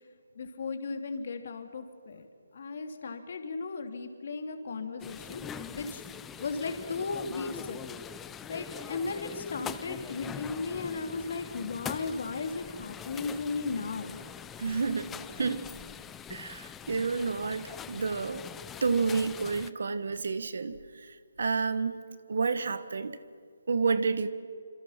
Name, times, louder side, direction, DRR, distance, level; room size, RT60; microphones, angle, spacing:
voice 1, 0.4-2.3 2.5-5.4 5.7-6.0 6.4-8.0 8.5-14.2, left 4 dB, 55° left, 6 dB, 2.8 m, -36 dB
sound 1, 5.0-19.7, left 8 dB, 10° left, 0.6 m, -43 dB
voice 2, 14.6-15.1 15.4-15.6 16.3-18.5 18.8-20.8 21.1-22.0 22.3-23.2 23.7-24.3, right 4 dB, 65° right, 13 dB, 1.5 m, -30 dB
27.5 x 26.5 x 5.9 m, 2.1 s
hypercardioid pair, 165°, 0 cm